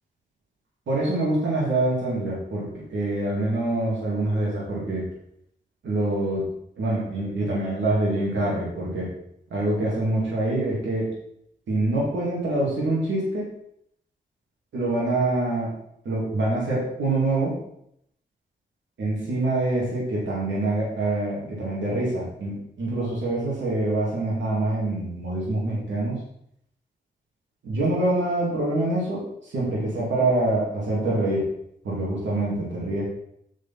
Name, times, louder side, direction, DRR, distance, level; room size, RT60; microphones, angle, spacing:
voice 1, 0.9-2.6 2.9-5.0 5.8-6.5 6.8-9.1 9.5-11.1 11.7-13.5 14.7-15.7 16.0-17.5 19.0-26.2 27.6-31.5 31.8-33.0, right 2 dB, 85° right, -5 dB, 2.6 m, -25 dB
6.7 x 5.1 x 5.7 m, 0.73 s
supercardioid pair, 40°, 19 cm